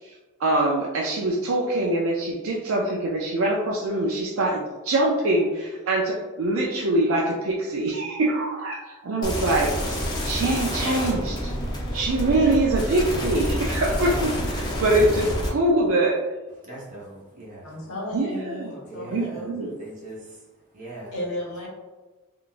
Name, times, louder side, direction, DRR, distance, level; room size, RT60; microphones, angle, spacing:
voice 1, 0.0-9.7 10.0-11.5 11.9-16.2 18.1-18.7 19.1-19.7, right 2 dB, 60° right, -3 dB, 0.4 m, -24 dB
sound 1, 9.2-15.5, equal, 20° left, 0.6 m, -28 dB
voice 2, 16.6-17.8 18.8-20.5 20.7-21.2, right 2 dB, 35° right, -5 dB, 0.8 m, -41 dB
voice 3, 17.6-19.5 21.1-21.7, left 1 dB, 75° left, -3 dB, 1.0 m, -34 dB
3.7 x 2.3 x 2.4 m, 1.2 s
head